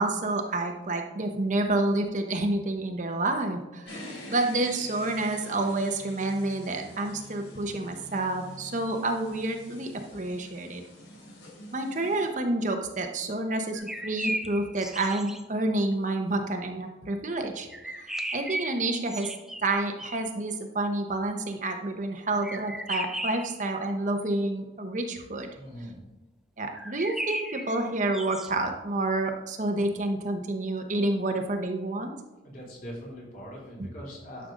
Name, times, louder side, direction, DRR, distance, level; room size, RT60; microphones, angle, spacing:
voice 1, 0.0-10.8 11.7-19.3 19.6-25.5 26.6-32.2 33.8-33.9, right 2 dB, 45° right, 4 dB, 1.0 m, -29 dB
sound 1, 3.9-12.3, equal, 85° left, 3.3 m, -46 dB
sound 2, 13.7-15.4 17.7-20.4 22.4-23.6 26.7-28.5, right 1 dB, 5° right, 0.5 m, -36 dB
voice 2, 25.5-26.0 32.4-34.5, equal, 50° left, -4 dB, 3.4 m, -42 dB
11.5 x 6.7 x 3.9 m, 1.1 s
head